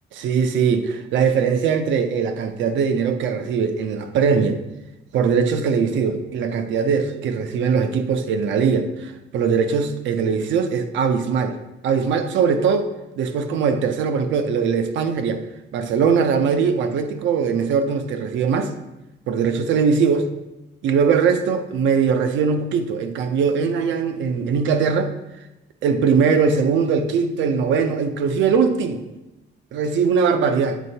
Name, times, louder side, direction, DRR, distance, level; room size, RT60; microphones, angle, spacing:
voice 1, 0.2-4.6 5.1-11.6 11.8-12.9 13.2-15.4 15.7-18.7 19.3-20.3 20.8-25.1 25.8-29.0 29.7-30.8, right 6 dB, 80° right, 8 dB, 0.6 m, -20 dB
8.1 x 4.3 x 2.7 m, 0.97 s
cardioid pair, 175°, 19 cm